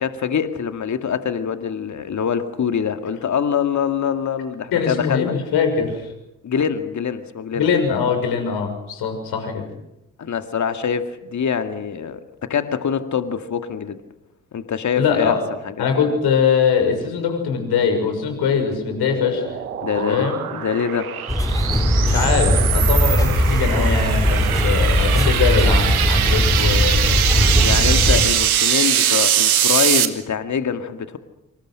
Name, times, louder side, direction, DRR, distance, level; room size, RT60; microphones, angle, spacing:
voice 1, 0.0-5.3 6.4-7.7 10.2-14.0 14.5-15.4 15.6-15.9 19.8-21.2 27.6-31.2, left 7 dB, 45° left, 2.2 m, -24 dB
voice 2, 4.7-6.1 7.5-9.6 15.0-15.4 15.8-19.6 20.0-20.4 21.8-27.2, left 6 dB, 60° left, 6.5 m, -22 dB
sound 1, 18.4-30.1, right 10 dB, 85° right, 1.3 m, -22 dB
sound 2, 21.3-28.3, equal, 10° left, 3.9 m, -18 dB
27.0 x 26.5 x 6.5 m
figure-of-eight pair, 40°, 42 cm